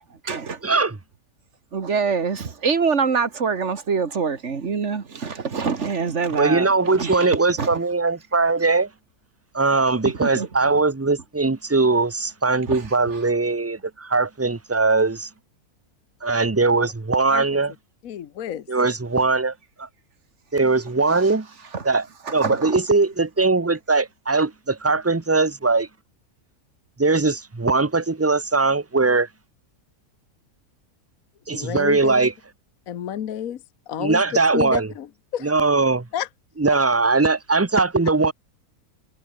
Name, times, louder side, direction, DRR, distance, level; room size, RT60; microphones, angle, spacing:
voice 1, 0.1-0.6 1.7-7.3 7.6-7.8 10.2-10.5 12.7-12.8 13.1-13.2 21.1-21.3 21.7-21.9 22.2-22.8, right 5 dB, 50° right, 1.9 m, -25 dB
voice 2, 0.6-1.0 6.4-8.9 9.5-15.3 16.2-17.7 18.7-19.9 20.5-21.5 21.8-22.1 22.3-25.9 27.0-29.3 31.5-32.3 34.0-34.9 35.4-36.1 36.6-38.3, right 3 dB, 20° right, 0.4 m, -20 dB
voice 3, 17.3-17.6 18.0-18.7 31.5-32.3 32.9-35.6 36.1-36.3 36.7-36.9 37.7-37.8, left 10 dB, 65° left, 1.3 m, -31 dB
omnidirectional pair, 1.6 m